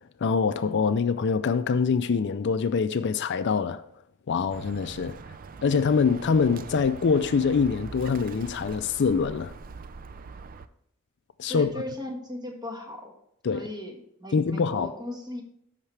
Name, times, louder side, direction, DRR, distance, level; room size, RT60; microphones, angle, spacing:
voice 1, 0.2-3.8 4.3-5.2 5.6-9.5 11.4-11.7 13.4-13.7 14.3-14.9, left 5 dB, 55° left, 0.4 m, -24 dB
Bird, 4.5-10.7, right 4 dB, 40° right, 0.4 m, -43 dB
voice 2, 11.5-13.1 13.5-15.4, left 1 dB, 20° right, 1.6 m, -37 dB
14.0 x 5.8 x 3.3 m
head